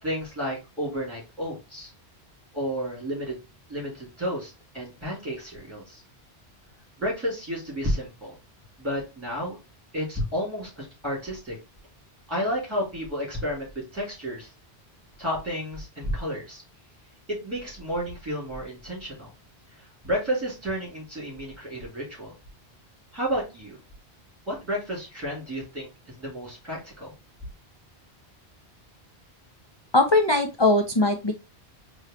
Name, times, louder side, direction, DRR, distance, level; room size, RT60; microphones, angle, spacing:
voice 1, 0.0-1.9 2.5-3.4 3.7-6.0 7.0-8.3 8.8-9.6 9.9-11.6 12.3-14.5 15.2-16.6 17.3-19.3 19.8-22.3 23.1-23.8 24.5-25.9 26.2-27.1, equal, 10° right, -5 dB, 3.0 m, -31 dB
voice 2, 29.9-31.3, left 2 dB, 35° left, 4 dB, 0.5 m, -20 dB
4.5 x 3.1 x 3.7 m, 0.27 s
omnidirectional pair, 1.1 m